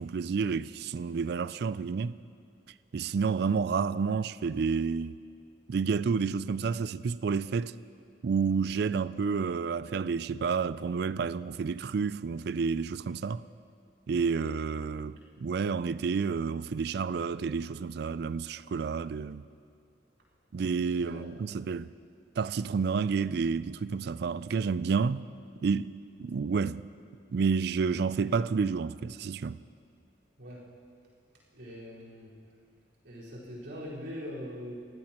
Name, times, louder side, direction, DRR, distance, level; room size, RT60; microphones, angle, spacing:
voice 1, 0.0-2.2 2.9-5.2 5.7-7.7 8.2-13.4 14.1-19.4 20.5-21.9 22.4-25.2 25.6-25.9 26.2-26.9 27.3-29.6, right 5 dB, 60° right, 0.3 m, -30 dB
voice 2, 20.8-21.2 30.4-30.6 31.5-32.3 33.0-34.8, equal, 85° right, 4.5 m, -42 dB
22.5 x 16.0 x 3.0 m
head